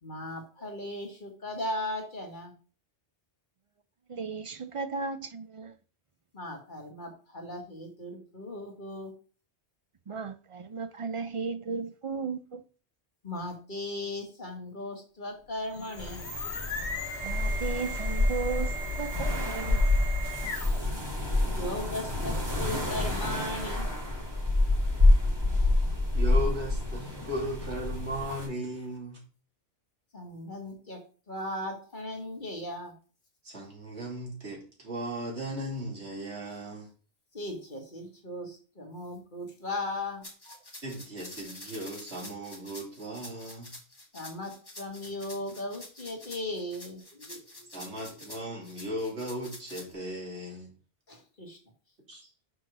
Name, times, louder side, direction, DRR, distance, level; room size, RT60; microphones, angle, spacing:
voice 1, 0.0-2.5 6.3-9.1 13.2-16.3 21.5-23.9 30.1-31.0 31.3-32.9 37.3-40.6 44.1-47.4 47.9-48.0 51.1-51.6, left 1 dB, 45° left, 1.9 m, -37 dB
voice 2, 4.1-5.7 10.1-12.6 17.2-19.8, right 4 dB, 50° right, 0.4 m, -35 dB
sound 1, 15.6-20.9, equal, 90° left, 1.4 m, -37 dB
sound 2, 16.0-28.5, left 2 dB, 20° right, 3.0 m, -27 dB
voice 3, 26.1-29.2 33.4-36.9 40.8-43.7 47.7-50.7 52.1-52.3, equal, 80° right, 3.2 m, -37 dB
sound 3, 40.2-49.9, left 1 dB, 20° left, 1.8 m, -47 dB
6.3 x 4.7 x 6.1 m
omnidirectional pair, 1.1 m